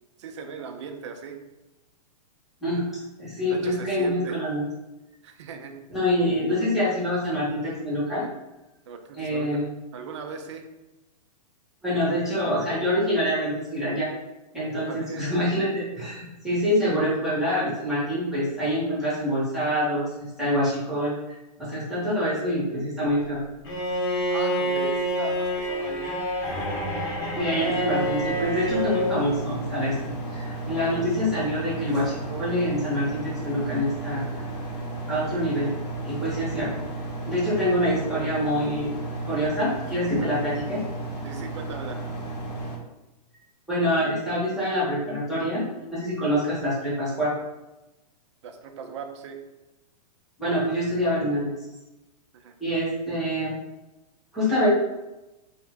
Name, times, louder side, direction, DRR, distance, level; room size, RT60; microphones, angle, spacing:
voice 1, 0.2-1.4 3.5-4.4 5.2-5.8 8.9-9.7 9.9-10.7 14.9-15.3 24.3-26.8 27.5-27.7 40.2-40.4 41.2-42.0 48.4-49.4 52.3-52.5, right 6 dB, 45° right, 5 dB, 0.4 m, -38 dB
voice 2, 3.2-4.6 5.9-8.3 9.1-9.7 11.8-14.1 14.5-23.4 27.4-29.9 30.3-34.4 35.1-35.7 36.0-36.9 37.3-38.9 39.2-40.8 43.7-47.3 50.4-51.6 52.6-53.5 54.3-54.7, equal, ahead, -10 dB, 0.7 m, -26 dB
Bowed string instrument, 23.6-29.2, equal, 40° left, 0.8 m, -27 dB
sound 1, 27.1-42.8, right 2 dB, 75° left, 0.8 m, -34 dB
2.7 x 2.1 x 3.4 m, 1.0 s
hypercardioid pair, 165°, 21 cm